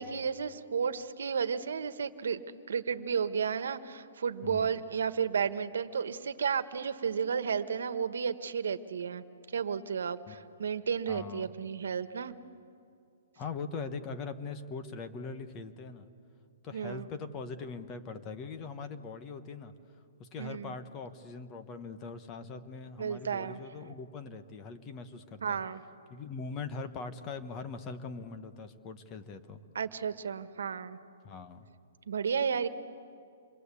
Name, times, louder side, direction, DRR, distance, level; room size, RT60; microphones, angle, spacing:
voice 1, 0.0-2.4 2.7-9.2 9.5-12.3 16.7-17.1 20.4-20.7 23.0-23.6 25.4-25.8 29.7-31.0 32.1-32.7, right 6 dB, 80° right, 11 dB, 1.4 m, -32 dB
voice 2, 11.1-11.5 13.4-16.1 16.6-19.7 20.2-25.6 26.1-29.6 31.2-31.7, left 4 dB, 20° left, 9 dB, 1.1 m, -41 dB
28.0 x 23.0 x 8.4 m, 2.4 s
hypercardioid pair, 170°, 0 cm